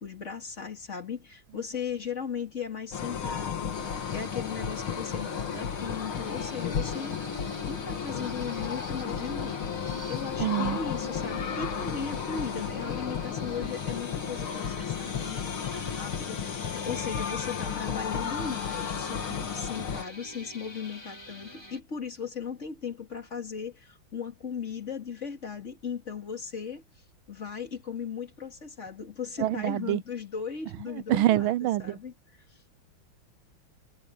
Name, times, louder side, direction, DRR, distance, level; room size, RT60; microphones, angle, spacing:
voice 1, 0.0-7.2 7.7-26.8 27.3-32.6, left 6 dB, 35° left, 2.4 m, -37 dB
sound 1, 2.9-20.0, left 7 dB, 80° left, 2.6 m, -33 dB
sound 2, 3.7-21.8, equal, 10° left, 2.9 m, -45 dB
voice 2, 10.4-10.8 29.4-30.0 31.1-32.0, right 14 dB, 80° right, 1.4 m, -25 dB
omnidirectional pair, 2.2 m